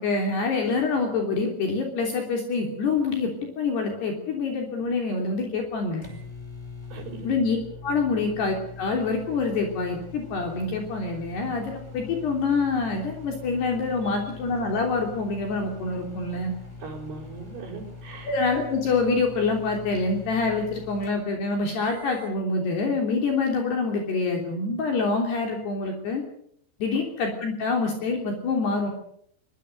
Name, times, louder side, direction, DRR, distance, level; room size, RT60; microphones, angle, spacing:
voice 1, 0.0-6.1 7.2-7.6 7.8-16.5 18.2-26.2 26.8-28.9, left 4 dB, 55° left, 2 dB, 5.1 m, -26 dB
sound 1, 5.4-22.4, left 4 dB, 5° left, 5.0 m, -43 dB
voice 2, 6.9-7.3 16.8-18.3, right 4 dB, 55° right, -5 dB, 6.4 m, -39 dB
24.5 x 22.0 x 6.7 m, 0.67 s
omnidirectional pair, 5.7 m